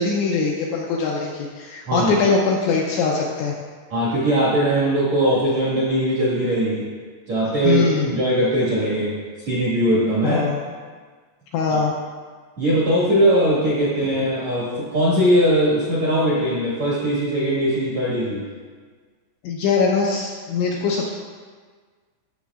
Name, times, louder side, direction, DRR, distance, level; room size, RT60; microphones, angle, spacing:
voice 1, 0.0-3.5 7.6-8.1 10.2-10.6 11.5-11.9 19.4-21.1, left 4 dB, 80° left, -2 dB, 2.7 m, -22 dB
voice 2, 3.9-6.9 7.3-10.4 12.6-18.4, right 1 dB, 60° right, -7 dB, 1.8 m, -20 dB
13.0 x 7.4 x 2.4 m, 1.5 s
omnidirectional pair, 5.9 m